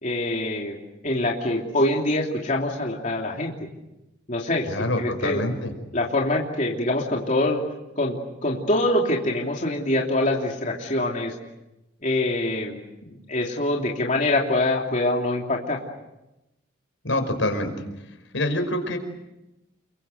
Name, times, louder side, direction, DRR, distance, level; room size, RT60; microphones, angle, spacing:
voice 1, 0.0-0.8 1.0-3.5 4.3-5.4 5.9-7.6 8.0-8.2 8.4-11.3 12.0-15.8, left 1 dB, 40° left, -1 dB, 3.1 m, -24 dB
voice 2, 4.7-5.7 17.0-17.7 18.3-19.0, left 1 dB, 80° left, 6 dB, 5.4 m, -25 dB
29.5 x 24.0 x 7.9 m, 0.97 s
head